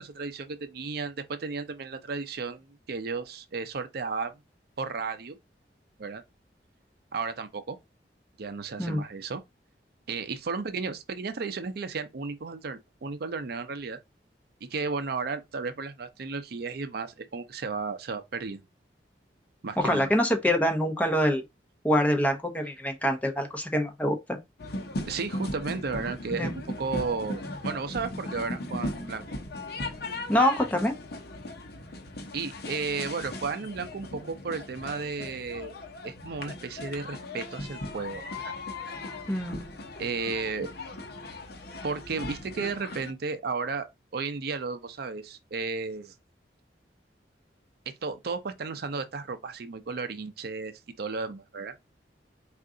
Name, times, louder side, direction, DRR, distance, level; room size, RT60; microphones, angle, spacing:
voice 1, 0.0-4.3 4.8-5.4 6.0-6.2 7.1-7.8 8.4-9.4 10.1-14.0 14.6-18.6 19.6-20.1 25.0-29.2 32.3-35.8 36.0-38.5 40.0-40.7 41.8-46.1 48.0-51.7, right 4 dB, 60° right, 0.5 m, -34 dB
voice 2, 19.8-21.4 21.8-24.4 26.4-26.5 30.3-30.9 39.3-39.6, equal, 10° left, 0.8 m, -25 dB
sound 1, 24.6-43.1, left 2 dB, 60° left, 0.8 m, -38 dB
4.6 x 2.5 x 3.7 m
head